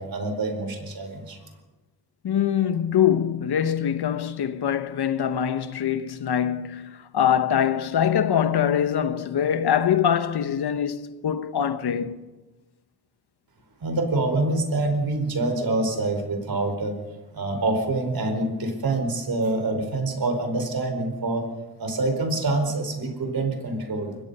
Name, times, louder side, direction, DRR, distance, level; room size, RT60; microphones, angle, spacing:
voice 1, 0.0-1.4 13.8-17.0 17.3-21.5 21.8-24.1, right 2 dB, 65° right, 4.9 m, -26 dB
voice 2, 2.2-12.3, left 9 dB, 80° left, 1.4 m, -23 dB
24.0 x 20.5 x 5.6 m
cardioid pair, 75°, 38 cm